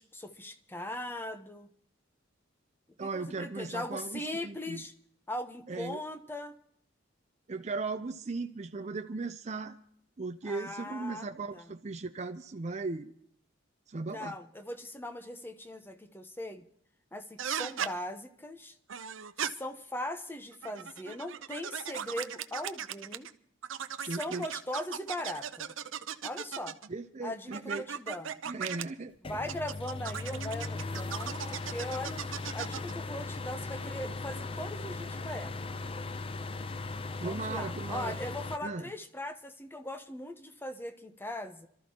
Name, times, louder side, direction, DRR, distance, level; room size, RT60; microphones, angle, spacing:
voice 1, 0.0-1.7 3.0-4.9 5.3-6.6 10.4-11.3 11.5-11.7 14.0-16.7 17.1-18.8 19.4-23.3 24.0-25.7 26.2-26.8 27.2-28.4 29.3-32.2 32.5-35.7 37.2-41.7, left 1 dB, 10° left, 9 dB, 0.9 m, -39 dB
voice 2, 3.0-4.8 5.7-6.0 7.5-9.8 10.2-13.1 13.9-14.4 24.1-24.5 26.9-27.9 28.5-29.1 37.2-38.2 38.6-38.8, right 3 dB, 35° right, 7 dB, 0.5 m, -37 dB
sound 1, 17.4-17.9 18.9-19.5 20.5-23.3 23.6-26.9 27.5-28.8 29.5-32.9, right 8 dB, 85° right, 0.7 m, -37 dB
sound 2, 29.2-38.6, left 3 dB, 30° left, 0.5 m, -38 dB
27.0 x 13.0 x 2.9 m, 0.67 s
head